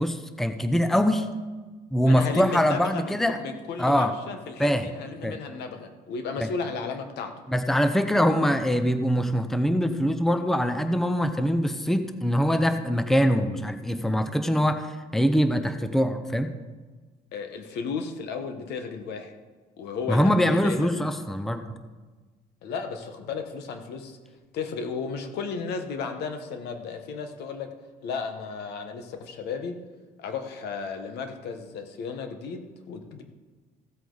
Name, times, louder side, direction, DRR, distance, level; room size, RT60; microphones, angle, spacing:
voice 1, 0.0-1.3 1.9-3.4 3.8-4.1 4.6-4.9 5.2-5.4 6.4-6.5 7.5-16.5 20.1-21.6, equal, ahead, 8 dB, 0.7 m, -23 dB
voice 2, 2.1-7.3 17.3-19.3 19.8-21.1 22.6-24.2 24.5-27.7 28.0-29.7 30.2-33.2, left 5 dB, 75° left, 6 dB, 1.3 m, -34 dB
15.0 x 8.1 x 4.0 m, 1.3 s
cardioid pair, 110°, 17 cm